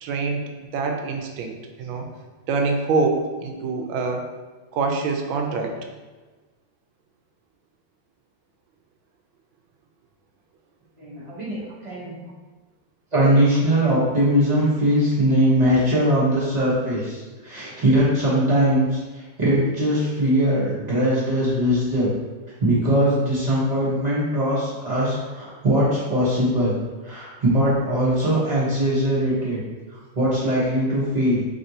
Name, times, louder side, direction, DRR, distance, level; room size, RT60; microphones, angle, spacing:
voice 1, 0.0-0.4 0.7-2.1 2.5-4.3 4.7-5.8, right 4 dB, 80° right, 3 dB, 1.3 m, -25 dB
voice 2, 11.0-12.2 13.1-22.1 22.6-26.7 27.0-29.6 29.9-31.4, equal, 30° right, -9 dB, 0.7 m, -21 dB
3.5 x 2.6 x 4.1 m, 1.3 s
omnidirectional pair, 2.3 m